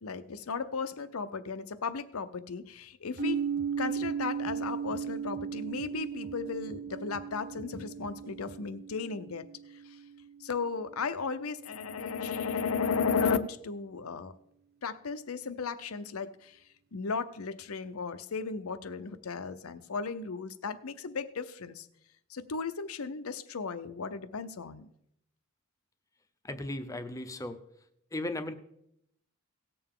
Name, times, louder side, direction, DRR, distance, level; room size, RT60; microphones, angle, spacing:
voice 1, 0.0-3.4 3.8-9.5 10.4-14.3 14.8-16.6 16.9-21.9 22.3-24.9, left 5 dB, 90° left, 11 dB, 0.7 m, -35 dB
sound 1, 3.1-8.6, right 3 dB, 90° right, 0.7 m, -54 dB
sound 2, 3.2-11.0, right 7 dB, 45° right, 0.8 m, -37 dB
voice 2, 26.4-27.6 28.1-28.5, left 1 dB, 15° left, 9 dB, 0.7 m, -36 dB
17.5 x 6.9 x 3.7 m, 0.77 s
head